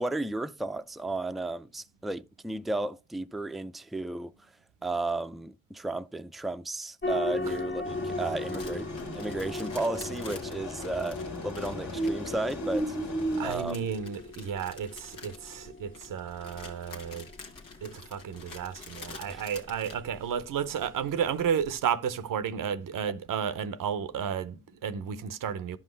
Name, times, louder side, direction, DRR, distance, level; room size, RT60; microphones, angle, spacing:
voice 1, 0.0-4.3 4.8-13.0 13.4-13.9 19.3-19.4, right 2 dB, ahead, 0.4 m, -34 dB
sound 1, 7.0-21.8, left 2 dB, 40° left, 0.9 m, -40 dB
sound 2, 7.8-13.5, equal, 60° left, 1.7 m, -35 dB
sound 3, 8.4-20.0, left 4 dB, 90° left, 1.4 m, -48 dB
voice 2, 13.4-17.3 17.8-25.8, right 8 dB, 80° right, 0.7 m, -32 dB
10.5 x 5.7 x 3.2 m
supercardioid pair, 40°, 32 cm